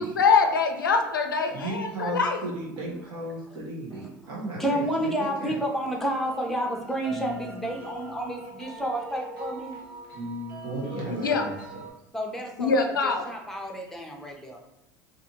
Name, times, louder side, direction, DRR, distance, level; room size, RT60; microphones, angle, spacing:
voice 1, 0.0-2.4 11.1-11.5 12.6-13.3, left 4 dB, 90° left, 5 dB, 0.4 m, -24 dB
voice 2, 1.5-5.1 5.4-5.5 10.6-11.6, right 2 dB, 50° right, -4 dB, 1.1 m, -35 dB
voice 3, 3.9-9.8 12.1-14.6, right 1 dB, 5° left, 0 dB, 0.8 m, -31 dB
sound 1, 5.7-11.9, equal, 75° right, 1.2 m, -40 dB
2.6 x 2.5 x 2.9 m, 0.94 s
hypercardioid pair, 75°, 11 cm